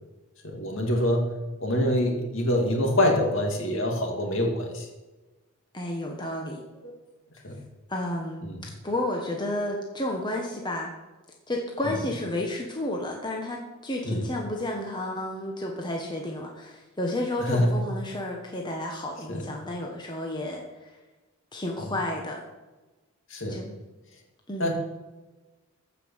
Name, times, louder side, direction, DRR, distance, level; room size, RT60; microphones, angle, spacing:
voice 1, 0.4-1.2 1.6-4.9 6.8-6.9 7.4-7.6 8.4-8.6 11.8-11.9 14.0-14.3 17.4-17.7 19.3-19.4 21.8-21.9 23.3-23.6 24.6-24.7, left 1 dB, 60° left, 2 dB, 2.6 m, -25 dB
voice 2, 5.7-6.6 7.9-8.5 8.8-10.9 11.5-20.9 21.5-22.4 23.5-23.8 24.5-24.7, left 1 dB, 20° left, 0 dB, 1.4 m, -31 dB
14.5 x 5.9 x 7.3 m, 1.2 s
head